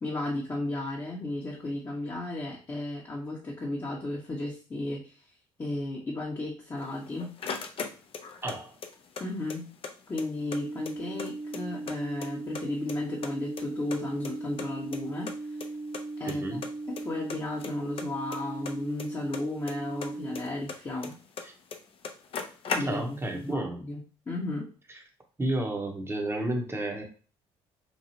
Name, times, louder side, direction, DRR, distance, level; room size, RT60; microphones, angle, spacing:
voice 1, 0.0-5.2 5.6-7.3 9.2-9.7 10.1-15.3 16.2-16.6 16.9-21.2 22.7-24.7, left 2 dB, 25° left, -3 dB, 0.9 m, -34 dB
sound 1, 6.8-8.6 8.8-9.9 10.2-10.3 10.5-11.9 12.2-13.0 13.2-14.7 14.9-15.0 15.3-15.4 15.6-15.7 15.9-16.3 16.6-17.0 17.3-19.7 20.0-21.4 21.7-21.8 22.0-23.3, left 5 dB, 45° left, 0.5 m, -37 dB
voice 2, 8.4-8.7 16.2-16.6 21.4-21.5 22.8-23.8 25.4-27.0, right 1 dB, 20° right, 3 dB, 0.9 m, -31 dB
sound 2, 10.4-20.4, right 2 dB, 65° right, 0.8 m, -38 dB
3.0 x 2.3 x 2.8 m, 0.37 s
hypercardioid pair, 60°, 13 cm